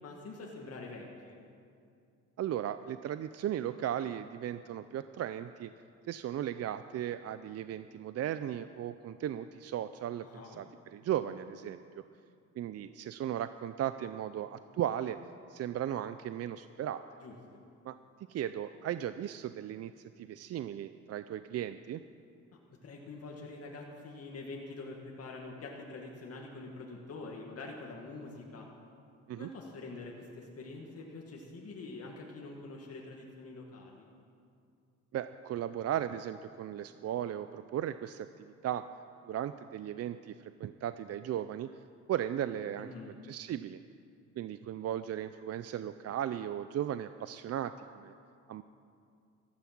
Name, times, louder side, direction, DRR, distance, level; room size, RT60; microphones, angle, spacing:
voice 1, 0.0-1.4 10.2-10.6 17.2-17.3 22.8-28.7 29.4-34.1 42.8-43.2, left 3 dB, 50° left, -1 dB, 2.1 m, -45 dB
voice 2, 2.4-5.7 6.1-10.7 10.9-12.0 12.6-15.2 15.5-17.0 17.9-18.0 18.3-19.9 20.2-22.0 29.3-29.5 35.1-38.8 39.3-41.7 42.1-42.9 43.3-43.8 44.4-48.1 48.5-48.6, right 11 dB, 55° right, 12 dB, 0.5 m, -36 dB
15.0 x 13.0 x 6.1 m, 2.4 s
cardioid pair, 90°, 30 cm